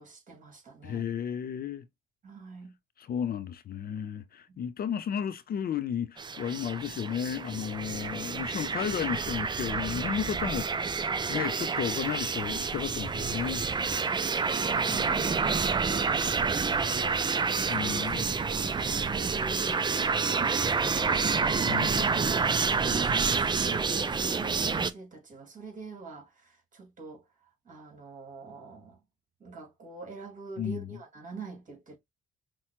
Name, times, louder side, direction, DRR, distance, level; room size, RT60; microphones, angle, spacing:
voice 1, 0.0-1.0 2.2-2.8 4.5-4.6 13.7-16.1 16.6-21.2 22.3-29.0 29.4-32.0, right 4 dB, 40° right, 2.1 m, -44 dB
voice 2, 0.8-1.8 3.0-10.9 11.3-13.6 14.9-15.3 17.7-18.3 21.6-22.4 30.6-31.0, left 8 dB, 50° left, 0.5 m, -33 dB
sound 1, 6.2-24.9, right 5 dB, 25° right, 0.4 m, -28 dB
5.6 x 2.2 x 2.9 m
cardioid pair, 90°, 20 cm